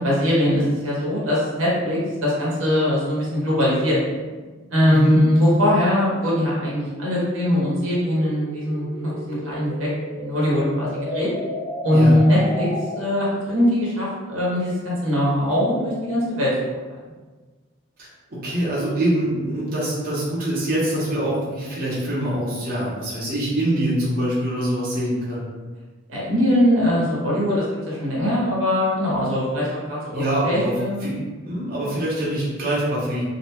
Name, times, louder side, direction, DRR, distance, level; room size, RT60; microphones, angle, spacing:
voice 1, 0.0-4.0 4.7-8.9 9.3-11.3 11.8-12.7 13.0-16.5 26.1-31.0, left 1 dB, 85° right, -6 dB, 0.9 m, -21 dB
sound 1, 4.3-13.3, left 1 dB, 80° left, 0.6 m, -35 dB
voice 2, 4.8-5.2 11.9-12.2 18.0-25.4 30.1-30.7 31.0-33.2, right 1 dB, 45° right, -7 dB, 0.8 m, -24 dB
2.6 x 2.2 x 2.9 m, 1.4 s
head